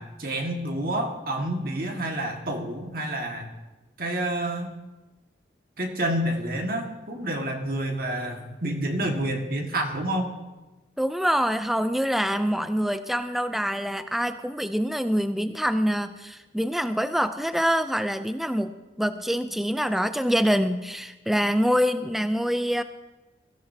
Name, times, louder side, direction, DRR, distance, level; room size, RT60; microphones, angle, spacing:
voice 1, 0.0-3.5 4.0-4.7 5.8-10.3, right 1 dB, 50° right, 2 dB, 1.8 m, -29 dB
voice 2, 11.0-22.8, equal, ahead, 10 dB, 0.4 m, -25 dB
23.0 x 15.0 x 2.8 m, 1.1 s
head